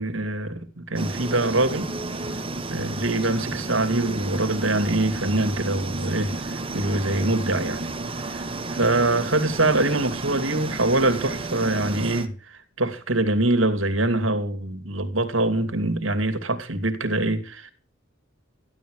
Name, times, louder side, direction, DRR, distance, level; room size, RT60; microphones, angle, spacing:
voice 1, 0.0-1.9 2.7-7.9 8.3-8.4 8.7-17.7, right 2 dB, 75° right, 2.7 m, -24 dB
sound 1, 0.9-12.3, right 2 dB, 30° right, 1.8 m, -32 dB
14.5 x 12.5 x 6.5 m
head